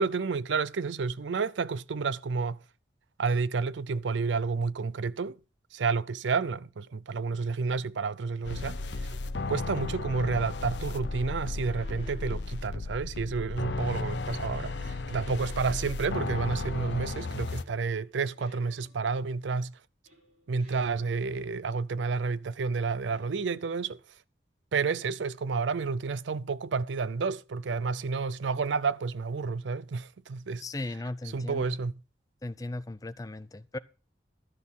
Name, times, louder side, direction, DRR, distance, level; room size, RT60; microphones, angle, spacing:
voice 1, 0.0-2.6 3.2-5.4 5.7-9.1 9.5-19.7 20.5-24.0 24.7-30.6 31.3-31.9, right 4 dB, 85° right, 0.5 m, -30 dB
sound 1, 8.4-17.6, left 3 dB, 75° left, 0.7 m, -34 dB
sound 2, 11.6-12.9 13.3-15.5 16.3-19.3 20.1-21.3 23.0-23.9, right 1 dB, 50° right, 4.3 m, -58 dB
voice 2, 30.6-31.8 32.4-33.8, left 2 dB, 20° left, 0.4 m, -37 dB
12.5 x 6.3 x 5.5 m
head